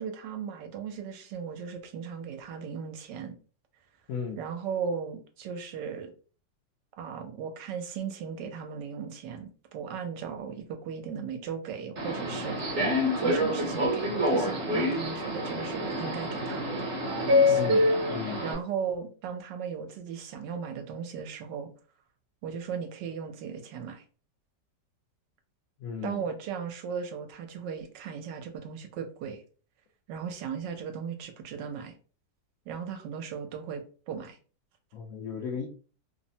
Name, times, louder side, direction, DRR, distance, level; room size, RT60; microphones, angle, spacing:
voice 1, 0.0-3.4 4.4-6.1 7.0-12.9 13.2-16.9 17.3-17.6 18.4-21.7 22.4-24.0 26.0-29.4 30.1-31.9 32.7-33.8 34.1-34.4, right 6 dB, 80° right, 5 dB, 1.2 m, -37 dB
voice 2, 4.1-4.4 17.5-18.5 25.8-26.3 34.9-35.7, left 6 dB, 70° left, 0 dB, 0.8 m, -36 dB
Subway metro underground, 12.0-18.5, left 1 dB, 55° right, 1.0 m, -26 dB
3.2 x 2.0 x 2.6 m, 0.38 s
omnidirectional pair, 1.9 m